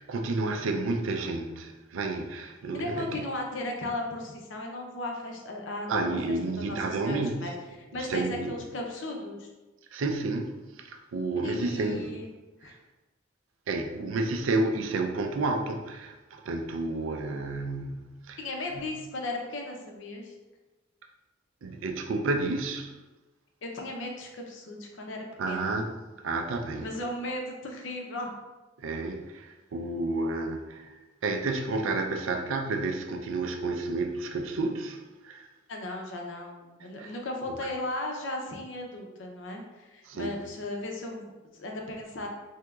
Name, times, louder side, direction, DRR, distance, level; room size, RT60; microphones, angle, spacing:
voice 1, 0.0-3.2 5.9-7.5 7.9-8.6 9.9-12.1 13.7-18.4 18.7-18.9 21.6-23.0 25.4-25.9 26.2-26.9 28.8-30.9 31.2-35.5 36.8-37.2 40.1-40.4, right 2 dB, 75° right, 0.4 m, -31 dB
voice 2, 2.7-6.2 6.6-7.5 7.9-9.5 11.4-12.3 12.6-12.7 18.4-20.3 23.6-25.8 26.8-28.4 35.7-42.3, left 2 dB, 65° left, 0.6 m, -36 dB
3.4 x 2.9 x 2.3 m
head